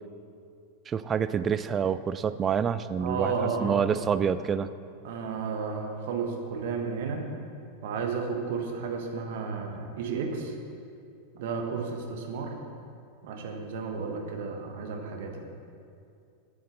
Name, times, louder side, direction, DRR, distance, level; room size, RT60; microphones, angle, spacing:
voice 1, 0.9-4.7, right 7 dB, 25° right, 13 dB, 0.3 m, -27 dB
voice 2, 3.0-4.0 5.0-7.3 7.8-10.5 11.3-12.5 13.2-15.5, right 5 dB, 55° right, 3 dB, 1.4 m, -32 dB
9.0 x 7.8 x 6.7 m, 2.4 s
figure-of-eight pair, 90°, 0 cm